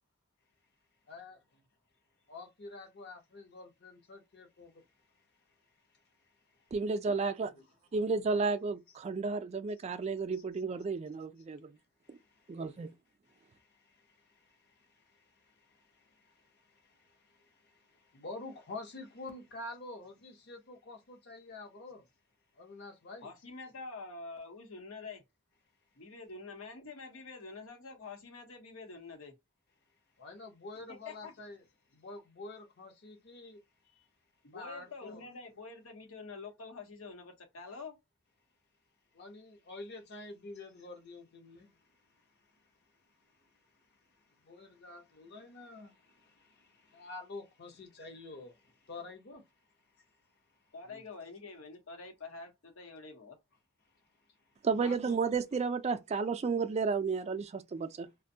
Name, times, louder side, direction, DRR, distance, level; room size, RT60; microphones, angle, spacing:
voice 1, 1.1-1.4 2.3-6.7 7.4-7.6 12.0-12.9 13.2-22.1 22.5-23.3 30.2-31.6 31.9-34.1 34.5-35.2 39.1-49.5 50.0-50.1 50.5-51.0 54.2-54.3 54.7-55.3, left 2 dB, 50° left, 0.7 m, -49 dB
voice 2, 6.7-7.5 7.9-11.7 12.1-12.2 12.5-12.9 54.6-58.1, right 4 dB, 30° right, 0.3 m, -32 dB
voice 3, 23.2-25.2 26.0-29.3 30.9-31.3 34.4-38.0 50.7-53.4, left 4 dB, 75° left, 0.9 m, -47 dB
2.5 x 2.1 x 2.7 m
head